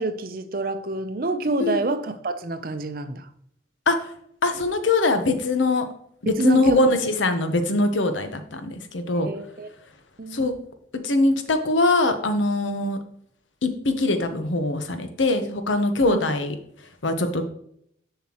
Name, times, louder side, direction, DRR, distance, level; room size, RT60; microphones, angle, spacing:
voice 1, 0.0-3.3 6.4-6.8 9.1-9.7 10.2-10.6 16.1-16.2, right 2 dB, 50° right, 10 dB, 0.6 m, -27 dB
voice 2, 4.4-5.9 6.2-9.3 10.3-10.5 11.0-13.0 13.6-16.5 17.0-17.4, left 2 dB, 90° left, 8 dB, 0.9 m, -22 dB
7.1 x 5.8 x 3.0 m, 0.69 s
head